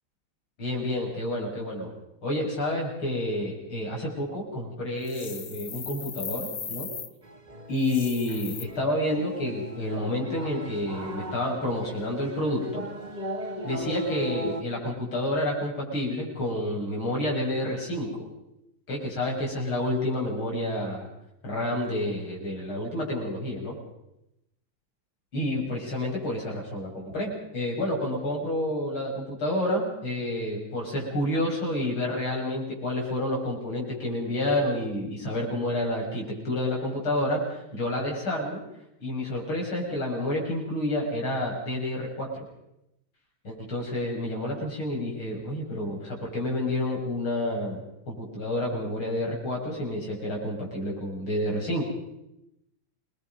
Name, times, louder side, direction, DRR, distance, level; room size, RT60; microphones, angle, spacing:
voice 1, 0.6-1.9 2.2-6.9 7.7-12.8 13.6-18.3 18.9-21.1 21.4-23.7 25.3-38.6 39.0-42.4 43.4-47.8 48.1-51.8, left 1 dB, 75° left, -2 dB, 7.3 m, -29 dB
sound 1, 5.0-7.1 7.8-8.6, left 6 dB, 45° left, 1.7 m, -38 dB
sound 2, 7.2-14.6, right 1 dB, 20° right, 1.8 m, -37 dB
27.5 x 21.5 x 5.4 m, 0.84 s
omnidirectional pair, 2.3 m